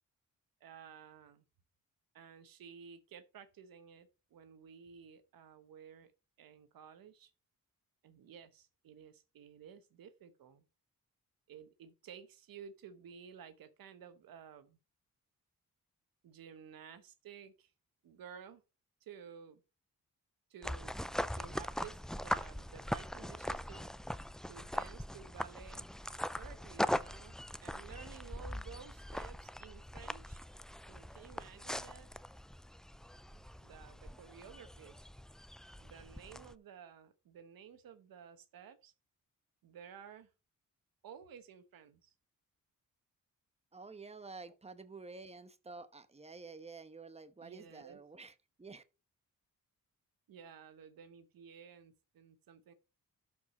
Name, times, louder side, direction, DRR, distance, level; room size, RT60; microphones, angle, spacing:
voice 1, 0.6-1.4 2.1-6.1 6.4-7.3 8.0-10.6 11.5-14.8 16.2-17.7 18.0-18.6 19.0-19.6 20.5-21.0 21.3-23.9 24.4-25.9 26.3-30.4 30.9-32.1 33.6-35.1 35.8-38.9 39.6-40.3 41.0-42.1 47.4-48.0 50.3-52.7, right 7 dB, 90° right, 1.0 m, -54 dB
sound 1, 20.6-36.5, equal, ahead, 0.4 m, -41 dB
voice 2, 43.7-48.8, right 4 dB, 20° right, 1.0 m, -50 dB
12.0 x 4.8 x 4.2 m
cardioid pair, 70°, 34 cm